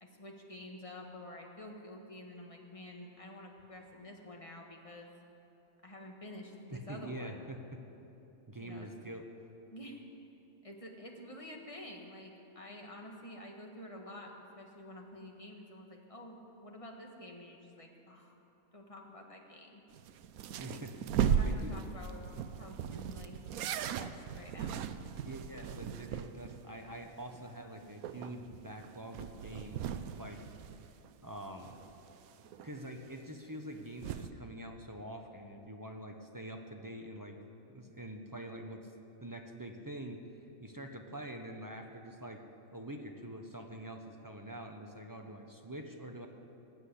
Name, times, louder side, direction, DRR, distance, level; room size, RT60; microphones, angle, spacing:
voice 1, 0.0-5.1 5.8-7.4 8.6-8.9 9.7-10.0 10.6-18.3 18.7-19.8 20.7-20.8 21.3-22.3 22.6-23.3 23.8-24.9, left 1 dB, 25° left, 1 dB, 1.5 m, -49 dB
voice 2, 6.7-7.8 8.5-9.2 20.6-20.9 21.4-21.7 25.2-30.4 31.2-31.8 32.6-37.4 37.7-38.9 39.2-40.2 40.6-42.4 42.7-46.3, right 1 dB, 20° right, 3 dB, 0.7 m, -45 dB
sound 1, 19.9-26.6 26.9-27.0 27.3-27.4 27.8-31.4 31.7-32.8 33.6-34.3, right 8 dB, 80° right, 1.1 m, -37 dB
19.0 x 7.7 x 8.4 m, 3.0 s
omnidirectional pair, 1.5 m